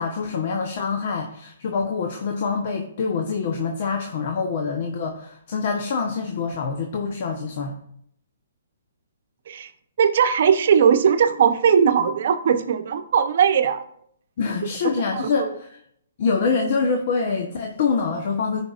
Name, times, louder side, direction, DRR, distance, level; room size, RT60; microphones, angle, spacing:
voice 1, 0.0-7.8 14.4-15.8 16.2-18.6, left 5 dB, 55° left, 3 dB, 0.9 m, -25 dB
voice 2, 10.0-13.8 15.1-15.5, right 7 dB, 60° right, 9 dB, 0.8 m, -19 dB
14.5 x 5.3 x 2.5 m, 0.69 s
hypercardioid pair, 150°, 0 cm